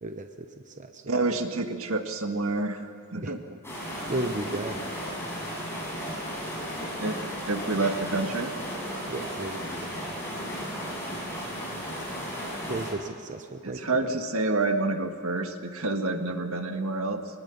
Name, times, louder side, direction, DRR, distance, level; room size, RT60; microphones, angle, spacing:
voice 1, 0.0-1.0 3.2-3.3 4.1-4.8 9.1-10.1 12.7-13.8, right 2 dB, 35° right, 6 dB, 0.9 m, -34 dB
voice 2, 1.1-3.4 7.0-8.5 13.6-17.2, right 2 dB, 70° right, 6 dB, 1.8 m, -28 dB
sound 1, 3.6-12.9, equal, 10° left, 7.8 m, -35 dB
23.5 x 20.5 x 7.1 m, 2.3 s
head